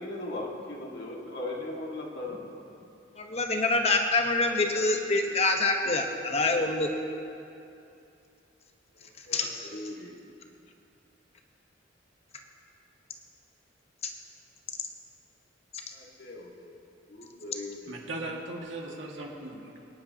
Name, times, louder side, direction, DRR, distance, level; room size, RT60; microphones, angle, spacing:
voice 1, 0.0-2.4 9.3-10.1 15.9-16.8 17.1-17.9, left 2 dB, 60° left, -1 dB, 1.7 m, -38 dB
voice 2, 3.2-6.9 9.3-9.7 14.0-14.1 15.7-15.8, left 3 dB, 35° left, 3 dB, 1.0 m, -26 dB
voice 3, 17.9-19.8, right 2 dB, 75° right, -1 dB, 1.8 m, -38 dB
23.5 x 10.5 x 2.8 m, 2.7 s
head